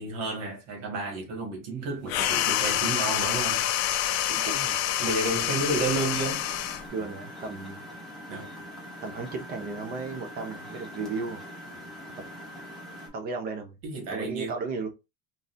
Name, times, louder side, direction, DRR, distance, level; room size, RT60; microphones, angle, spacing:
voice 1, 0.0-3.7 5.0-6.4 8.3-8.5 13.8-14.5, right 3 dB, 75° right, 1.7 m, -31 dB
sound 1, 2.1-6.9, left 12 dB, 55° left, 0.5 m, -27 dB
voice 2, 4.3-4.8 6.9-7.8 9.0-11.4 12.1-12.2 13.1-13.8 14.1-14.9, right 4 dB, 30° right, 0.6 m, -35 dB
Engine, 5.4-13.1, equal, ahead, 0.8 m, -43 dB
3.8 x 2.6 x 2.5 m
cardioid pair, 180°, 30 cm